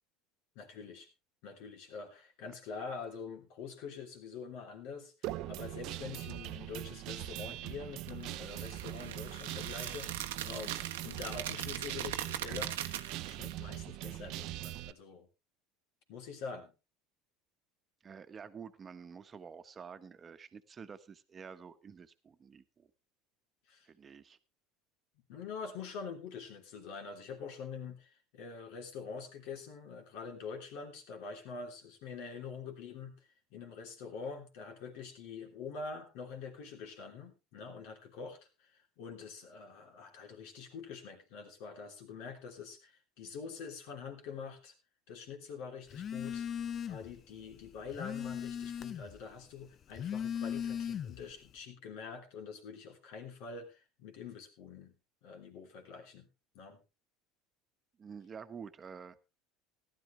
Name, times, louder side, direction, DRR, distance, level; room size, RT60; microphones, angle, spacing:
voice 1, 0.5-1.1 1.4-5.1 5.5-10.8 11.0-12.7 13.3-15.3 16.1-16.7 23.7-23.9 25.3-44.7 45.1-46.4 46.9-54.9 55.2-56.3 56.5-56.8, left 5 dB, 70° left, 4 dB, 3.2 m, -45 dB
Guitar, 5.2-14.9, right 16 dB, 60° right, 0.7 m, -42 dB
sound 1, 8.1-13.5, right 12 dB, 90° right, 1.0 m, -41 dB
voice 2, 18.0-22.9 23.8-24.4 58.0-59.2, right 6 dB, 30° right, 11 dB, 1.2 m, -49 dB
Telephone, 45.9-47.2 47.5-49.2 49.8-51.3, left 8 dB, 40° left, 0.6 m, -38 dB
15.0 x 11.5 x 3.3 m, 0.26 s
hypercardioid pair, 90°, 0 cm